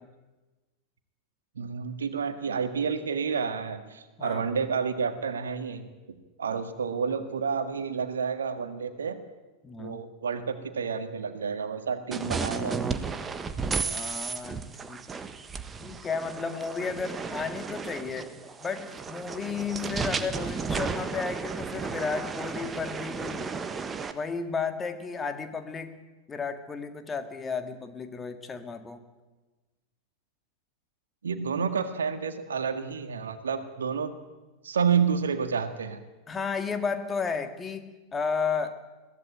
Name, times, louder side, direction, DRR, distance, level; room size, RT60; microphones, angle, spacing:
voice 1, 1.6-9.2 9.8-12.9 31.2-34.2 34.6-36.0, right 6 dB, 70° right, 9 dB, 1.8 m, -30 dB
voice 2, 9.6-10.0 13.8-14.6 14.9-15.1 15.8-18.3 18.6-23.5 24.1-26.0 26.3-29.0 36.3-38.7, left 5 dB, 15° left, 8 dB, 1.9 m, -33 dB
sound 1, 12.1-24.1, right 5 dB, 15° right, 1.5 m, -34 dB
22.0 x 16.5 x 9.1 m, 1.2 s
figure-of-eight pair, 90°, 0 cm